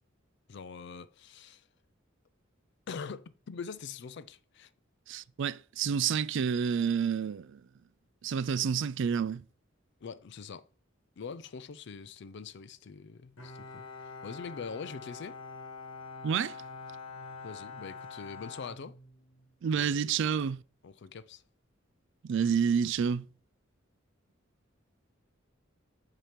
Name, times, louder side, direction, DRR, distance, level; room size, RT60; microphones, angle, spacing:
voice 1, 0.5-1.6 2.9-4.7 10.0-10.7 11.2-15.4 17.4-19.0 19.7-20.4 20.8-21.4, left 5 dB, 60° left, 0.4 m, -43 dB
voice 2, 5.1-7.6 8.2-9.4 16.2-16.6 19.6-20.6 22.2-23.3, right 7 dB, 65° right, 0.3 m, -29 dB
Bowed string instrument, 13.4-19.5, left 4 dB, 90° left, 1.2 m, -45 dB
7.6 x 2.9 x 5.1 m
head